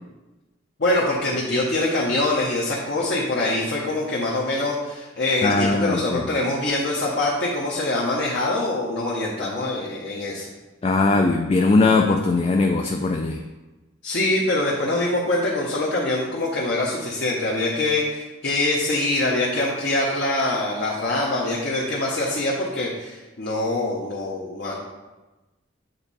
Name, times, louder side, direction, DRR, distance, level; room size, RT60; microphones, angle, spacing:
voice 1, 0.8-10.5 14.0-24.8, left 2 dB, 55° left, -4 dB, 0.9 m, -24 dB
voice 2, 5.4-6.2 10.8-13.4, left 3 dB, 30° left, 3 dB, 0.3 m, -20 dB
8.0 x 3.5 x 4.1 m, 1.1 s
head